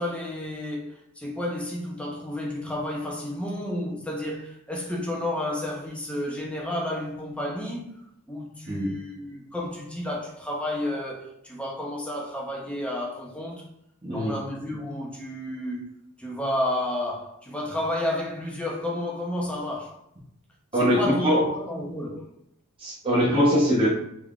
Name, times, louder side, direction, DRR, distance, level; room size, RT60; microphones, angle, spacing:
voice 1, 0.0-7.9 8.3-13.7 14.1-15.8 16.2-20.0 20.7-22.3, left 1 dB, 5° left, 0.7 m, -31 dB
voice 2, 14.0-14.3 20.7-21.5 22.8-23.9, equal, 25° right, 0.9 m, -22 dB
3.5 x 3.4 x 2.4 m
head